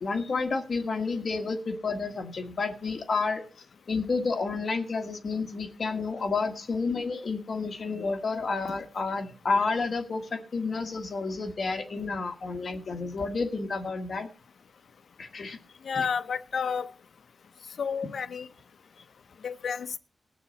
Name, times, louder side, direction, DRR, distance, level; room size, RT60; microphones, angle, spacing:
voice 1, 0.0-3.4 3.9-14.3 15.2-15.6 15.9-16.1, left 4 dB, 50° left, 1.7 m, -30 dB
voice 2, 15.9-16.9 17.8-18.5 19.4-19.9, left 6 dB, 70° left, 0.7 m, -30 dB
20.5 x 6.9 x 4.2 m
wide cardioid pair, 165°, 0 cm